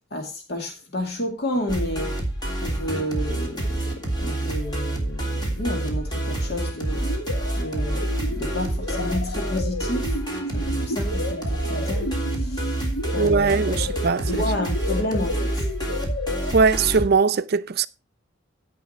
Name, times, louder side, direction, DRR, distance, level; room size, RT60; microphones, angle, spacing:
voice 1, 0.1-2.2 2.6-7.1 7.5-10.2 10.5-12.8 13.1-13.7 14.2-15.6, left 1 dB, 55° left, 2.3 m, -31 dB
sound 1, 1.7-17.1, right 1 dB, 20° left, 3.1 m, -27 dB
sound 2, 7.0-16.5, left 2 dB, 75° left, 1.7 m, -32 dB
voice 2, 13.2-14.3 16.5-17.9, right 5 dB, 50° right, 0.5 m, -20 dB
15.5 x 5.6 x 4.4 m
head